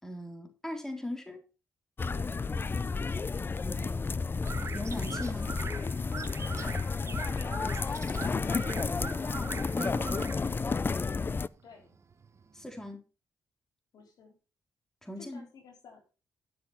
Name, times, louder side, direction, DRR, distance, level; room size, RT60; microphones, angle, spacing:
voice 1, 0.0-1.4 3.6-4.2 4.7-5.6 8.8-10.4 12.5-13.0 15.0-15.4, left 1 dB, 5° left, 3.7 m, -40 dB
sound 1, 2.0-11.5, left 4 dB, 30° left, 0.5 m, -32 dB
voice 2, 2.1-2.4 7.0-7.5 11.6-11.9 13.9-14.4 15.2-16.0, left 5 dB, 75° left, 4.1 m, -53 dB
sound 2, 4.4-12.9, right 5 dB, 45° right, 1.3 m, -43 dB
12.0 x 6.9 x 5.7 m
cardioid pair, 70°, 7 cm